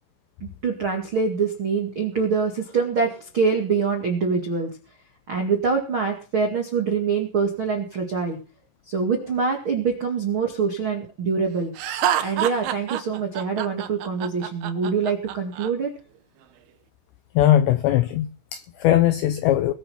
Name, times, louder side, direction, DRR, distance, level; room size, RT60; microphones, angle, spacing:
voice 1, 0.4-4.8 5.3-8.4 8.9-11.7 12.2-15.9, right 5 dB, 60° right, 1.3 m, -24 dB
Laughter, 11.8-15.7, right 11 dB, 75° right, 2.4 m, -27 dB
voice 2, 17.4-19.7, left 12 dB, 80° left, 2.5 m, -20 dB
21.5 x 7.3 x 5.7 m
omnidirectional pair, 5.9 m